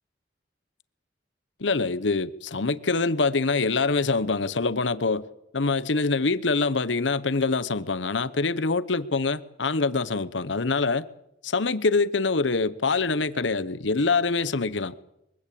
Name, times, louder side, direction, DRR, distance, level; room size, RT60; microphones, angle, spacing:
voice 1, 1.6-5.2 5.5-11.0 11.4-14.9, left 3 dB, 85° left, 1.0 m, -25 dB
23.5 x 15.5 x 8.6 m
head